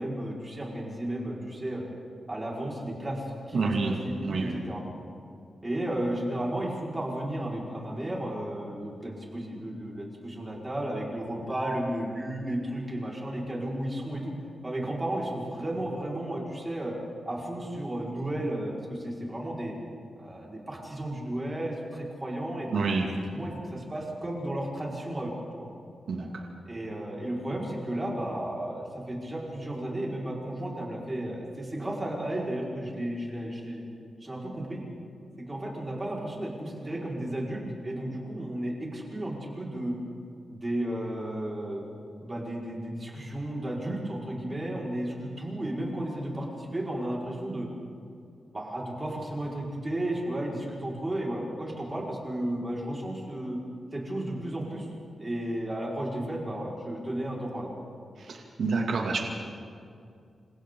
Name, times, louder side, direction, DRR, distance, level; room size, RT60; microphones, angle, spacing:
voice 1, 0.0-1.8 2.3-4.8 5.6-14.3 14.6-17.0 17.3-19.7 20.2-22.9 23.3-25.7 26.7-33.9 34.2-34.8 35.5-40.0 40.5-41.8 42.2-47.7 48.5-53.6 53.9-54.9 55.2-57.7, right 1 dB, 20° right, -4 dB, 5.2 m, -33 dB
voice 2, 3.5-3.9 4.2-4.6 22.7-23.1 26.1-26.3 58.6-59.2, right 4 dB, 70° right, 0 dB, 2.6 m, -27 dB
29.0 x 27.0 x 4.0 m, 2.4 s
wide cardioid pair, 150°, 0 cm